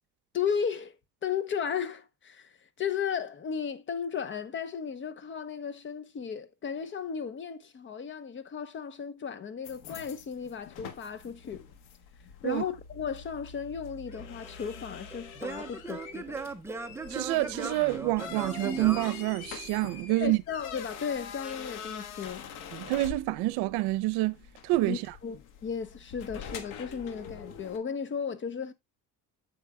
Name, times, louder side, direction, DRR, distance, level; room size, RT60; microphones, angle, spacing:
voice 1, 0.3-11.6 12.4-16.4 20.2-22.4 24.9-25.4 25.6-28.7, left 7 dB, 30° left, 0.9 m, -35 dB
sound 1, 9.6-27.8, left 7 dB, 90° left, 1.4 m, -45 dB
Singing / Plucked string instrument, 14.1-20.0, right 3 dB, 5° right, 0.6 m, -39 dB
voice 2, 17.1-20.4 22.7-24.4 24.6-25.0, right 18 dB, 90° right, 0.7 m, -27 dB
9.1 x 7.3 x 2.2 m
cardioid pair, 145°, 38 cm